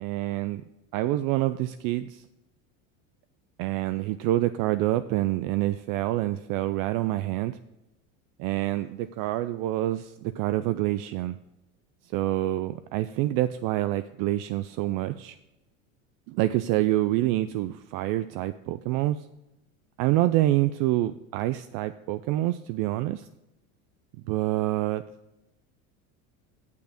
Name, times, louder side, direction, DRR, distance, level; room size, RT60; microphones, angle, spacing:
voice 1, 0.0-0.6 0.9-2.2 3.6-7.6 8.4-11.4 12.1-15.4 16.3-19.2 20.0-23.3 24.3-25.1, right 15 dB, 55° right, 12 dB, 0.4 m, -27 dB
8.3 x 6.8 x 5.0 m, 0.94 s
supercardioid pair, 110°, 41 cm